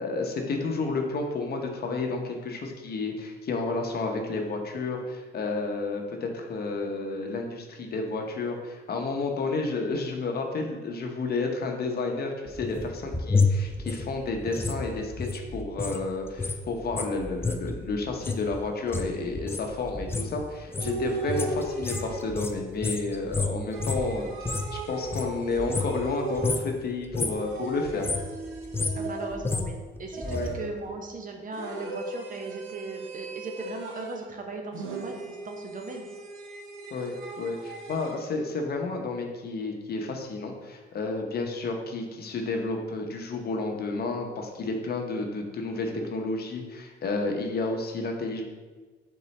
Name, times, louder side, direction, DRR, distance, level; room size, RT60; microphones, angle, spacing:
voice 1, 0.0-28.1 30.2-30.5 36.9-48.4, left 3 dB, 50° left, 2 dB, 0.7 m, -31 dB
sound 1, 12.5-16.0 16.3-24.8 25.0-26.1 26.4-26.7 27.0-27.5 27.8-30.5 30.8-30.9, left 3 dB, 10° left, 0.3 m, -30 dB
sound 2, 20.8-22.5 23.7-26.8 27.3-29.6 30.1-30.8 31.5-34.3 34.7-38.3, right 3 dB, 85° right, 0.7 m, -37 dB
voice 2, 28.9-36.0, right 3 dB, 40° right, 3 dB, 0.7 m, -38 dB
4.0 x 3.7 x 3.2 m, 1.3 s
cardioid pair, 90°, 20 cm